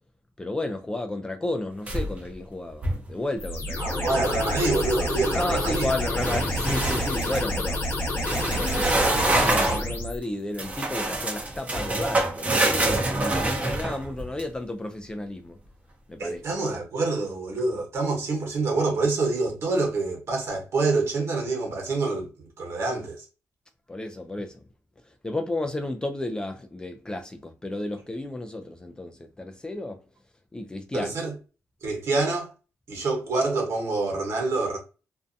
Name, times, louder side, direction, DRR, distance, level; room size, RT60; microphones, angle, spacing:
voice 1, 0.4-4.2 5.3-7.8 8.5-15.6 16.1-16.4 23.9-24.7 25.1-30.0 30.5-31.2, left 2 dB, 15° left, 0.4 m, -33 dB
sound 1, 1.9-2.3 2.7-3.1 6.2-7.5 8.2-9.9 10.6-14.4, right 2 dB, 25° right, 0.7 m, -26 dB
sound 2, 3.4-10.2, left 1 dB, 45° left, 0.9 m, -28 dB
voice 2, 3.8-5.9 16.2-23.2 30.9-31.3 31.8-32.5 32.9-34.8, right 3 dB, 50° right, 1.2 m, -26 dB
2.6 x 2.1 x 2.5 m
cardioid pair, 100°, 6 cm